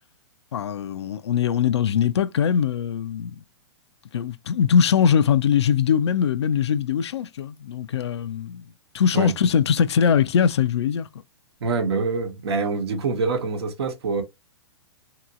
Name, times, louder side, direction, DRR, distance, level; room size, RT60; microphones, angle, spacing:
voice 1, 0.5-3.4 4.1-8.7 8.9-11.1, left 8 dB, 75° left, 0.4 m, -21 dB
voice 2, 11.6-14.2, right 4 dB, 70° right, 0.9 m, -25 dB
2.9 x 2.9 x 2.4 m
hypercardioid pair, 120°, 14 cm